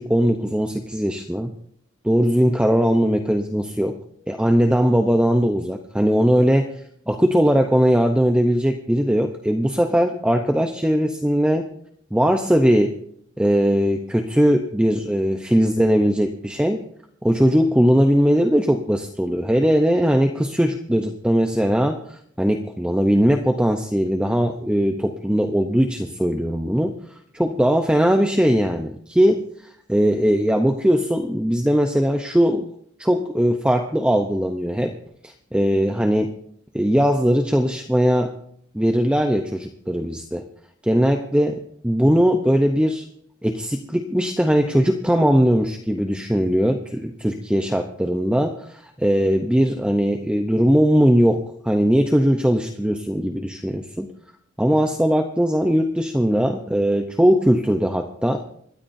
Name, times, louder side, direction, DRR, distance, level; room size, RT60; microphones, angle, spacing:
voice 1, 0.0-1.5 2.0-4.0 4.3-6.7 7.1-11.7 12.1-13.0 13.4-16.8 17.2-26.9 27.3-29.4 29.9-32.7 33.0-35.0 35.2-36.3 36.7-38.3 38.7-40.4 40.8-41.6 41.8-43.1 43.4-54.1 54.6-58.4, equal, 5° right, 5 dB, 0.7 m, -19 dB
25.5 x 13.0 x 2.6 m, 0.67 s
head